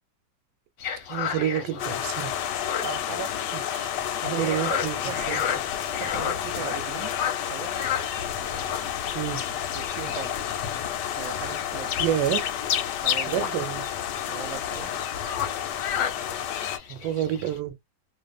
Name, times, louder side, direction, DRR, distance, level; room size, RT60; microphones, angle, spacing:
sound 1, 0.8-17.6, left 8 dB, 60° left, 0.9 m, -35 dB
voice 1, 1.1-2.3 3.5-3.9 4.3-5.4 9.1-9.4 12.0-12.5 13.3-13.8 16.9-17.7, right 11 dB, 90° right, 1.2 m, -28 dB
sound 2, 1.8-16.8, left 10 dB, 90° left, 1.2 m, -30 dB
voice 2, 2.8-3.3 4.2-5.5 6.0-7.7 9.7-10.4 11.2-12.0 13.0-13.5 14.3-15.0, right 8 dB, 65° right, 0.9 m, -38 dB
2.5 x 2.4 x 2.3 m
omnidirectional pair, 1.8 m